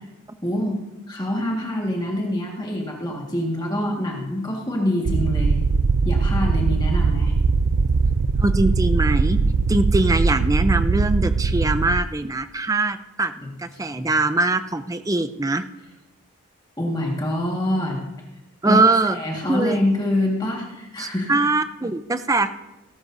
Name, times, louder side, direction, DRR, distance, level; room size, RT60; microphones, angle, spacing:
voice 1, 0.4-0.8 1.1-5.5 6.1-7.3 13.4-13.5 13.9-14.1 16.8-18.0 18.6-18.8 19.1-21.4, left 1 dB, 20° left, -1 dB, 1.7 m, -25 dB
sound 1, 5.1-12.0, right 4 dB, 65° right, 0.5 m, -20 dB
voice 2, 8.4-9.4 9.7-13.3 13.6-15.6 18.6-19.2 19.5-19.8 21.0-22.5, right 2 dB, 15° right, 10 dB, 0.5 m, -22 dB
18.5 x 12.5 x 2.7 m, 1.0 s
head